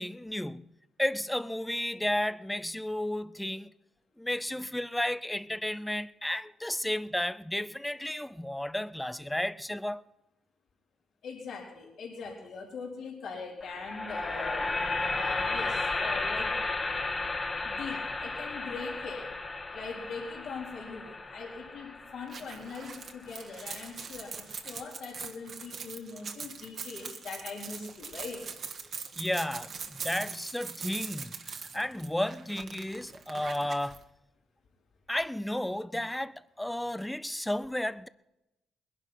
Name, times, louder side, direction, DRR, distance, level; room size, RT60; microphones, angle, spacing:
voice 1, 0.0-3.7 4.2-10.0 29.2-34.0 35.1-38.1, left 1 dB, 5° left, 0.6 m, -33 dB
voice 2, 11.2-14.7 15.1-16.5 17.6-19.3 19.7-28.4, left 4 dB, 70° left, 4.2 m, -41 dB
sound 1, 13.6-23.7, left 3 dB, 25° left, 1.8 m, -34 dB
sound 2, 22.3-34.0, right 5 dB, 50° right, 1.6 m, -42 dB
20.5 x 11.0 x 5.8 m
cardioid pair, 90°, 0 cm